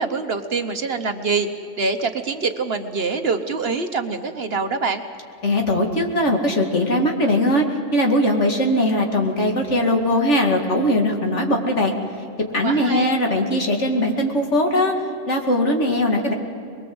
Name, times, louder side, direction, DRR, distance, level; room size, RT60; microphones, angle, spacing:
voice 1, 0.0-1.5 1.8-5.0 12.6-13.2, right 4 dB, 50° right, 7 dB, 1.3 m, -24 dB
voice 2, 5.4-11.9 12.5-14.9 15.3-16.3, left 1 dB, 65° left, 2 dB, 2.6 m, -20 dB
22.5 x 22.0 x 7.9 m, 2.7 s
omnidirectional pair, 1.3 m